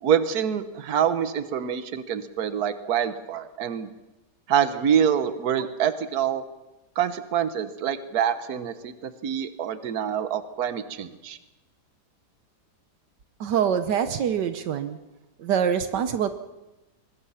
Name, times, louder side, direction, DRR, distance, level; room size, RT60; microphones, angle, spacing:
voice 1, 0.0-3.9 4.5-6.4 7.0-11.4, right 8 dB, 65° right, 11 dB, 1.6 m, -26 dB
voice 2, 13.4-15.0 15.4-16.3, right 8 dB, 80° right, 10 dB, 1.5 m, -24 dB
23.0 x 20.5 x 5.7 m, 1.0 s
omnidirectional pair, 1.8 m